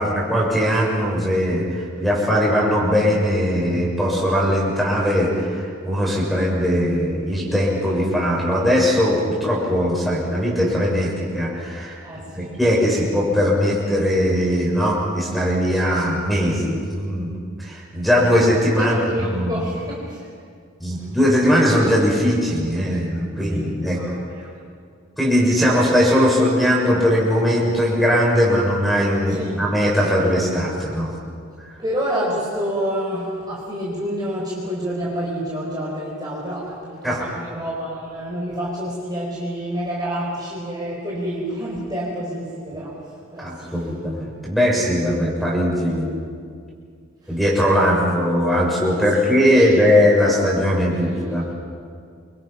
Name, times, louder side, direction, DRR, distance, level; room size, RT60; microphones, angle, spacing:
voice 1, 0.0-12.0 12.3-17.3 17.6-18.9 19.3-19.6 20.8-24.0 25.2-31.1 37.0-37.2 43.4-46.2 47.3-51.5, equal, ahead, -3 dB, 6.7 m, -20 dB
voice 2, 12.0-12.6 18.7-20.3 20.9-21.1 23.5-23.7 23.9-24.5 29.3-29.7 31.8-43.9 47.2-47.4 49.1-49.3 49.5-49.9, equal, 20° right, -5 dB, 4.7 m, -28 dB
29.0 x 25.5 x 6.0 m, 2.2 s
head